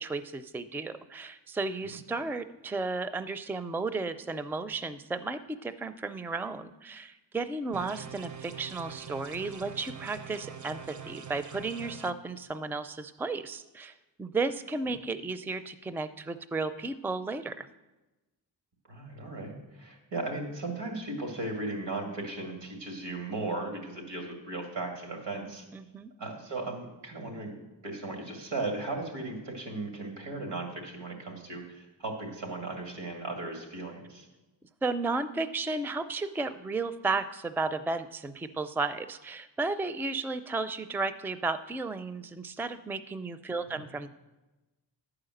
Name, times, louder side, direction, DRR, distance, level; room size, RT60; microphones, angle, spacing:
voice 1, 0.0-17.7 25.7-26.1 34.8-44.1, right 3 dB, 5° right, 12 dB, 0.4 m, -34 dB
sound 1, 7.7-12.1, right 7 dB, 45° right, 0.7 m, -44 dB
voice 2, 18.9-25.6 26.2-27.5 27.8-34.3 43.7-43.8, right 2 dB, 80° right, 2 dB, 2.5 m, -36 dB
11.0 x 4.9 x 7.8 m, 1.1 s
cardioid pair, 70°, 42 cm